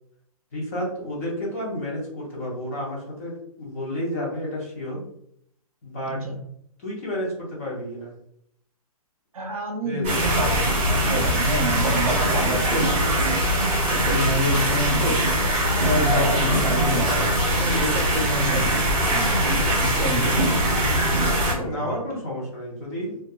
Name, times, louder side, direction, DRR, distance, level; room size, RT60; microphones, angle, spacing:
voice 1, 0.5-5.0 5.8-6.2 6.8-8.1 9.8-10.3 21.5-23.2, equal, 25° left, -5 dB, 0.7 m, -31 dB
voice 2, 9.3-12.9 13.8-15.2 15.8-18.8 19.1-20.9 21.2-22.0, equal, 65° right, 2 dB, 0.7 m, -28 dB
sound 1, 10.0-21.5, right 1 dB, 10° right, 1.1 m, -22 dB
2.8 x 2.3 x 2.2 m, 0.71 s
hypercardioid pair, 170°, 19 cm